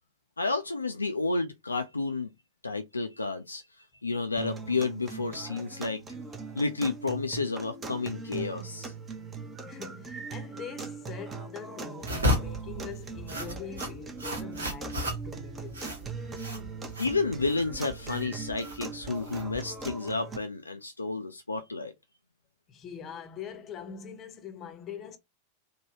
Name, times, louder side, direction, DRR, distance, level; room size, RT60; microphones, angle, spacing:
voice 1, 0.4-2.3 2.6-3.6 4.0-6.0 6.6-8.9 17.0-21.9, left 3 dB, 80° left, 0.3 m, -31 dB
sound 1, 4.4-20.4, right 4 dB, 20° right, 0.7 m, -40 dB
voice 2, 9.7-15.8 22.7-25.2, left 7 dB, 30° left, 0.7 m, -43 dB
sound 2, 12.0-19.9, left 1 dB, 75° right, 1.1 m, -34 dB
3.2 x 2.2 x 2.8 m
figure-of-eight pair, 90°, 0 cm